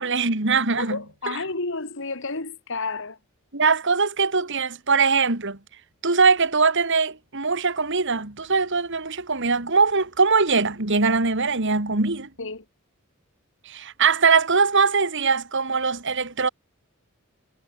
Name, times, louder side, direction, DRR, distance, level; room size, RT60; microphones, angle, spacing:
voice 1, 0.0-1.0 1.3-1.4 3.5-5.6 6.0-12.3 13.7-16.5, right 4 dB, 60° right, 2.6 m, -21 dB
voice 2, 0.8-3.2 12.4-12.6, left 3 dB, 65° left, 2.7 m, -31 dB
head